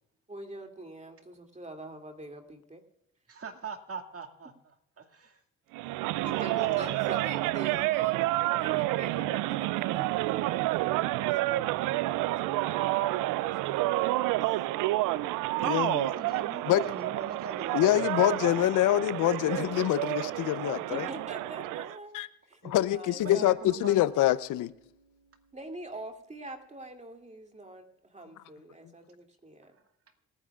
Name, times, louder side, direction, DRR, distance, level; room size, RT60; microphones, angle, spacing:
voice 1, 0.3-2.8 6.2-14.6 20.7-22.6 22.9-23.6 25.5-29.8, right 2 dB, 20° right, 4 dB, 2.7 m, -45 dB
voice 2, 3.3-4.5 5.0-5.4 6.1-7.3 16.1-18.1 22.6-22.8 23.2-24.0, right 5 dB, 50° right, 4 dB, 2.2 m, -41 dB
sound 1, 5.7-22.0, right 17 dB, 85° right, 0.5 m, -29 dB
voice 3, 15.6-16.1 16.7-16.8 17.7-21.1 22.1-22.3 22.6-24.7, left 14 dB, 80° left, 16 dB, 0.7 m, -25 dB
Bass guitar, 23.1-27.0, right 5 dB, 65° right, 5.5 m, -61 dB
27.0 x 9.8 x 2.4 m, 0.82 s
supercardioid pair, 55°, 31 cm